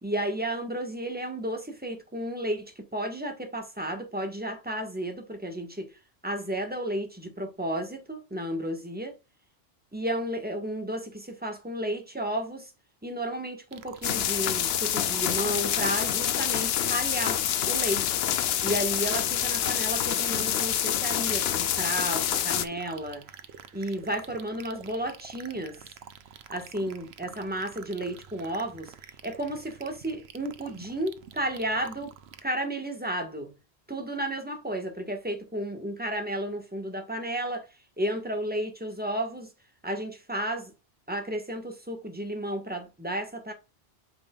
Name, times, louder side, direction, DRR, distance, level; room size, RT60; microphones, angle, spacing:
voice 1, 0.0-5.9 6.2-9.1 9.9-12.7 13.0-18.2 18.6-23.2 23.7-25.9 26.5-28.9 29.2-32.1 32.4-33.5 33.9-37.7 38.0-39.5 39.8-40.7 41.1-43.5, right 1 dB, 10° right, 1.4 m, -32 dB
sound 1, 13.7-32.4, right 8 dB, 80° right, 1.0 m, -48 dB
sound 2, 14.0-22.7, left 10 dB, 75° left, 0.9 m, -27 dB
8.1 x 5.4 x 2.4 m
omnidirectional pair, 1.1 m